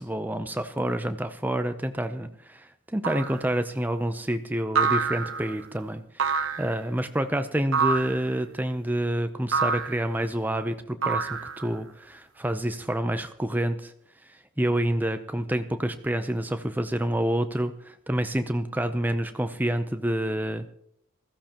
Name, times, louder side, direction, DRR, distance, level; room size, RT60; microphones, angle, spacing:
voice 1, 0.0-13.9 14.6-20.7, right 1 dB, 10° right, 8 dB, 0.6 m, -28 dB
sound 1, 3.0-3.5 4.7-5.5 6.2-6.8 7.7-8.3 9.5-10.0 11.0-11.8, right 5 dB, 75° right, 1.0 m, -26 dB
20.0 x 14.5 x 3.0 m, 0.72 s
head